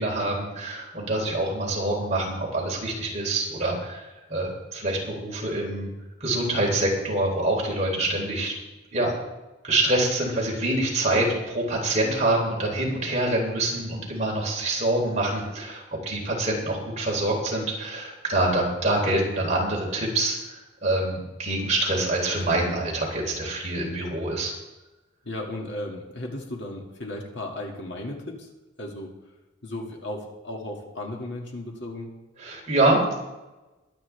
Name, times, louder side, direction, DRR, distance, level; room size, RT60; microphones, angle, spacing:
voice 1, 0.0-5.9 6.2-8.5 8.9-9.1 9.6-11.3 11.5-24.5 32.4-33.2, right 2 dB, 35° right, -2 dB, 3.4 m, -25 dB
voice 2, 11.1-11.4 13.9-14.0 25.2-28.5 28.8-29.2 29.6-32.1, left 1 dB, 60° left, 0 dB, 2.1 m, -35 dB
22.0 x 8.9 x 3.4 m, 1.1 s
head